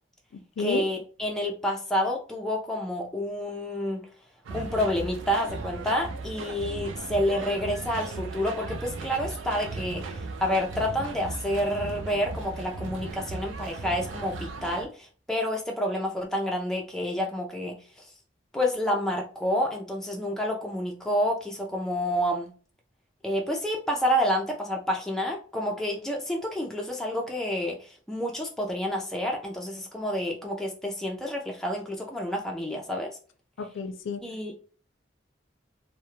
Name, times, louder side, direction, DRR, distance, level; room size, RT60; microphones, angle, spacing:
voice 1, 0.6-4.0 4.5-18.1 18.5-22.5 23.2-33.2 34.2-34.5, equal, ahead, 0 dB, 0.3 m, -29 dB
sound 1, 4.5-14.9, right 3 dB, 90° right, 0.4 m, -37 dB
voice 2, 33.7-34.2, left 4 dB, 90° left, 8 dB, 0.4 m, -30 dB
2.2 x 2.0 x 2.9 m, 0.40 s
head